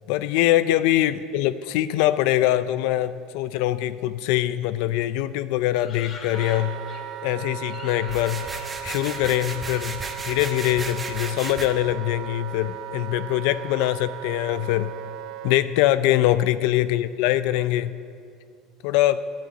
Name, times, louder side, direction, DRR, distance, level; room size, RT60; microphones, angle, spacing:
voice 1, 0.1-6.8 7.2-8.5 8.8-14.9 15.4-18.0 18.8-19.2, left 14 dB, 75° left, 14 dB, 0.4 m, -23 dB
sound 1, 5.7-7.2 7.7-11.6 11.8-12.7 13.3-13.9 14.1-14.2 14.5-16.8 17.1-17.2, left 4 dB, 45° left, 1.9 m, -44 dB
Wind instrument woodwind instrument, 6.3-15.6, right 13 dB, 50° right, 0.5 m, -37 dB
sound 2, 8.0-11.7, right 3 dB, 15° right, 1.3 m, -35 dB
11.5 x 10.5 x 9.1 m, 2.3 s
cardioid pair, 140°, 0 cm